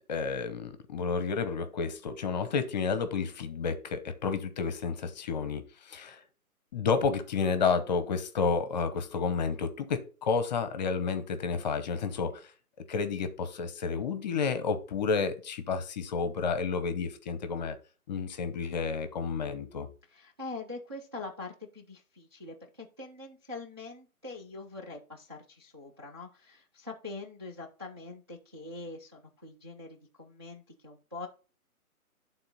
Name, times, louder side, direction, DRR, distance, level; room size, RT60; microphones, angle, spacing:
voice 1, 0.1-6.2 6.7-12.5 12.9-17.8 18.1-19.9, left 5 dB, 30° left, 0.8 m, -31 dB
voice 2, 20.1-31.3, left 3 dB, 20° right, 0.4 m, -43 dB
11.5 x 3.9 x 4.1 m
figure-of-eight pair, 140°, 44 cm